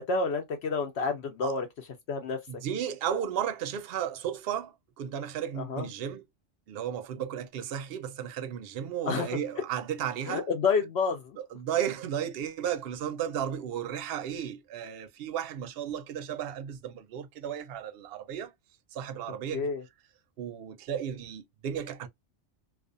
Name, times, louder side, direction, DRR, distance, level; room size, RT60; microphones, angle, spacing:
voice 1, 0.0-1.7 2.1-2.4 5.6-5.9 9.0-9.3 10.3-11.4 19.5-19.8, left 4 dB, 65° left, 0.8 m, -29 dB
voice 2, 2.5-6.2 6.7-10.5 11.4-18.5 18.9-19.7 20.4-22.1, right 9 dB, 60° right, 0.7 m, -34 dB
2.4 x 2.3 x 2.4 m
omnidirectional pair, 1.3 m